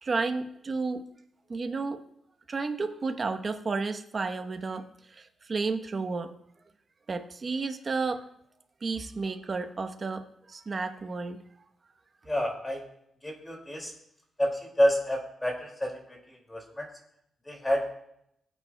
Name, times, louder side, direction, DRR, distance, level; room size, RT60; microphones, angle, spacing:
voice 1, 0.0-1.0 1.5-2.0 2.5-6.3 7.1-8.2 8.8-11.4, right 4 dB, 35° right, 7 dB, 1.0 m, -32 dB
voice 2, 12.3-12.8 13.2-13.9 14.4-16.2 16.5-16.9 17.5-17.9, equal, 10° left, 1 dB, 2.3 m, -28 dB
21.0 x 9.0 x 2.3 m, 0.75 s
cardioid pair, 130°, 0 cm